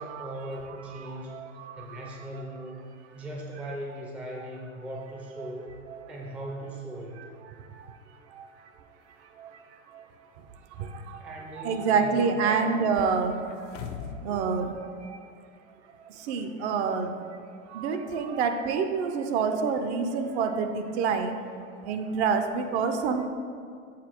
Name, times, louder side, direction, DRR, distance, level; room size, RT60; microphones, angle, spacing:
voice 1, 0.0-1.4 1.8-2.8 3.1-5.7 6.1-7.2 11.2-12.6, right 1 dB, 5° right, -1 dB, 0.4 m, -39 dB
voice 2, 1.0-2.0 4.9-5.0 5.4-5.5 5.9-6.0 7.7-8.0 8.3-8.5 9.4-9.6 9.9-10.0 10.8-13.7 14.0-15.2 15.9-17.1 17.7-21.4 21.8-23.3, right 5 dB, 55° right, 7 dB, 0.7 m, -28 dB
sound 1, 13.5-14.4 14.7-14.8, left 7 dB, 50° left, 0.6 m, -38 dB
7.5 x 4.3 x 4.3 m, 2.2 s
hypercardioid pair, 125°, 41 cm